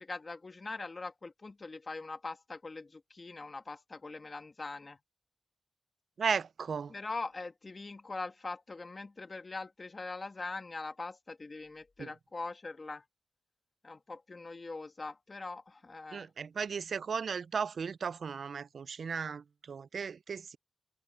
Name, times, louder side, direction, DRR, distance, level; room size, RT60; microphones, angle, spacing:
voice 1, 0.0-5.0 6.9-13.1 13.8-16.3, left 3 dB, 35° left, 1.7 m, -42 dB
voice 2, 6.2-6.9 12.0-12.1 16.1-20.6, right 6 dB, 65° right, 0.4 m, -35 dB
cardioid pair, 85°, 0 cm